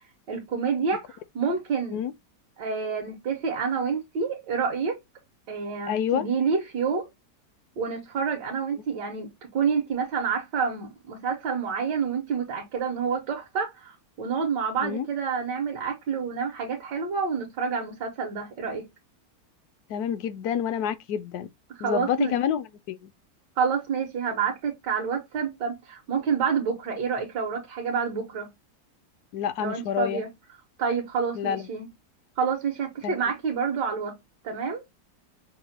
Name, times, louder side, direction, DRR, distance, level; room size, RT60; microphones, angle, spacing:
voice 1, 0.0-2.0 2.6-5.0 5.5-7.1 7.8-18.9 21.8-22.3 23.6-28.5 29.6-30.3 30.8-31.9 32.4-34.2 34.4-34.8, right 6 dB, 85° right, 1.6 m, -28 dB
voice 2, 5.9-6.2 14.8-15.1 19.9-21.5 21.8-23.1 29.3-30.2 31.4-31.7 33.0-33.2, left 8 dB, 75° left, 1.0 m, -28 dB
6.0 x 2.1 x 2.6 m
omnidirectional pair, 1.8 m